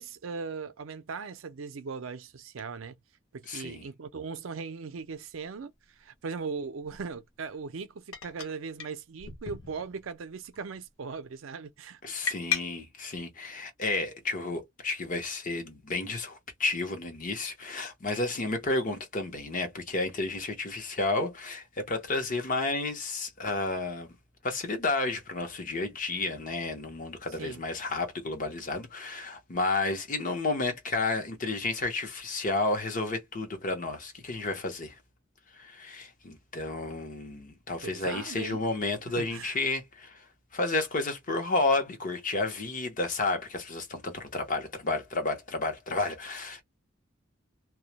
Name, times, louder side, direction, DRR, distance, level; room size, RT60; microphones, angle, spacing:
voice 1, 0.0-2.9 3.3-5.7 6.0-12.3 27.4-27.6 37.8-38.7 39.2-39.6, right 5 dB, 75° right, 0.5 m, -39 dB
voice 2, 3.5-3.8 12.0-24.1 24.4-35.0 35.5-40.3 40.5-46.6, left 2 dB, 40° left, 0.8 m, -31 dB
sound 1, 5.1-5.2 6.8-7.0 8.1-8.5 8.8-8.9 9.2-10.1 10.4-10.8 12.3-12.6, left 8 dB, 75° left, 0.7 m, -35 dB
2.2 x 2.1 x 2.8 m
head